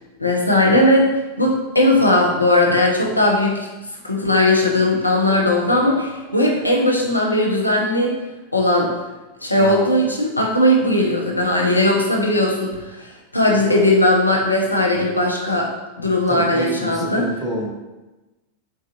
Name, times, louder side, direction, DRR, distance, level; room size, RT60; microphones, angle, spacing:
voice 1, 0.2-1.1 1.4-3.6 4.0-8.1 8.5-8.9 9.4-12.7 13.0-13.1 13.3-15.7 16.0-17.2, left 1 dB, 85° left, -1 dB, 0.5 m, -18 dB
voice 2, 9.6-9.9 16.3-17.7, equal, 15° right, -2 dB, 0.7 m, -28 dB
3.9 x 2.4 x 2.7 m, 1.1 s
figure-of-eight pair, 90°, 0 cm